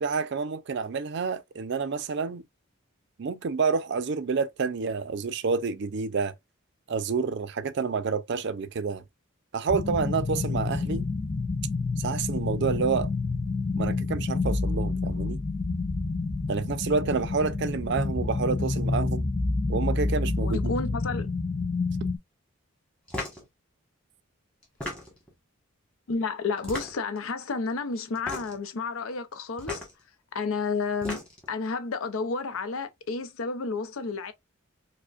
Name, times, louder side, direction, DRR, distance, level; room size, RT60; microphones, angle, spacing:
voice 1, 0.0-2.4 3.2-6.3 6.9-9.0 9.5-11.1 12.0-13.1 13.7-15.4 16.5-19.3 19.7-20.7, right 5 dB, 55° right, 0.4 m, -28 dB
sound 1, 9.7-22.2, left 3 dB, 20° left, 0.3 m, -28 dB
voice 2, 20.4-21.3 26.1-29.9 30.3-31.2 31.5-34.3, left 4 dB, 85° left, 0.5 m, -31 dB
sound 2, 23.1-23.4 24.6-25.3 26.6-27.2 28.2-28.6 29.6-29.9 30.8-31.5, left 1 dB, 5° left, 1.2 m, -36 dB
4.9 x 2.1 x 2.4 m
head